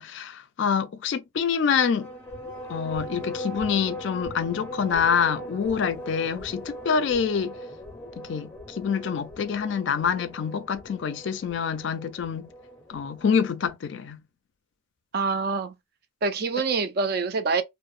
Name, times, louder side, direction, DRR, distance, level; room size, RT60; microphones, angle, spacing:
voice 1, 0.0-2.1 2.7-7.6 8.2-12.5 12.9-14.2, left 6 dB, 60° left, 0.4 m, -26 dB
sound 1, 1.8-13.7, equal, 10° left, 0.6 m, -39 dB
voice 2, 15.1-15.8 16.2-17.6, right 4 dB, 50° right, 0.4 m, -25 dB
2.8 x 2.0 x 2.4 m
head